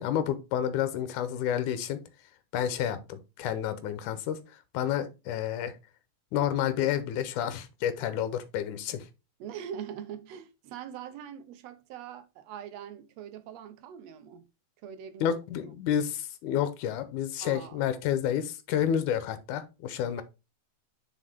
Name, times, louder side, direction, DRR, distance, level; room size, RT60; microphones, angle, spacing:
voice 1, 0.0-2.0 2.5-4.4 4.7-5.7 6.3-9.0 15.2-20.2, left 10 dB, 85° left, 2.4 m, -30 dB
voice 2, 9.4-14.4 14.8-15.3 17.4-18.0, right 9 dB, 75° right, 1.7 m, -42 dB
6.2 x 5.1 x 3.4 m
omnidirectional pair, 3.5 m